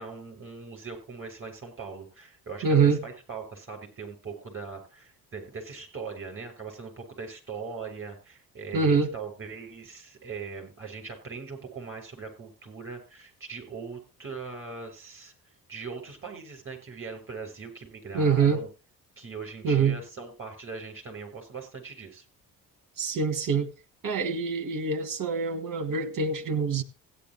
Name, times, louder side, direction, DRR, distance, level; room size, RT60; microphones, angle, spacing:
voice 1, 0.0-15.3 15.7-18.7 19.2-22.2, right 5 dB, 25° right, 6.9 m, -40 dB
voice 2, 2.6-3.0 8.7-9.1 18.1-18.6 19.6-20.0 23.0-23.7 24.0-26.8, right 5 dB, 40° right, 1.7 m, -25 dB
16.5 x 10.5 x 3.1 m
figure-of-eight pair, 45°, 50 cm